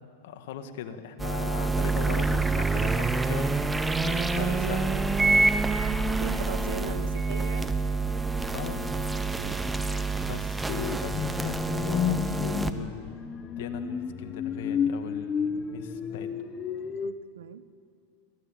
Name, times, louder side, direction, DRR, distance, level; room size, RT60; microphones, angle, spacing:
voice 1, 0.2-3.6 4.3-5.0 8.5-8.9 10.2-16.3, left 8 dB, 70° left, 8 dB, 1.7 m, -39 dB
sound 1, 1.2-12.7, right 3 dB, 10° right, 1.0 m, -27 dB
voice 2, 4.0-7.7 9.3-9.6 10.2-10.3 17.0-17.7, right 9 dB, 85° right, 14 dB, 1.0 m, -39 dB
sound 2, 11.1-17.1, left 7 dB, 25° left, 1.0 m, -31 dB
22.5 x 14.5 x 9.0 m, 2.3 s
supercardioid pair, 130°, 0 cm